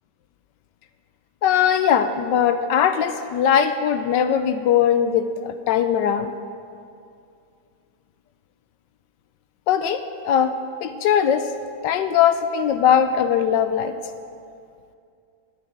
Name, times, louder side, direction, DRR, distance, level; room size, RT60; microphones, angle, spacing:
voice 1, 1.4-6.3 9.7-11.5 11.8-14.0, left 8 dB, 75° left, 9 dB, 1.2 m, -20 dB
13.5 x 6.1 x 9.3 m, 2.4 s
omnidirectional pair, 2.0 m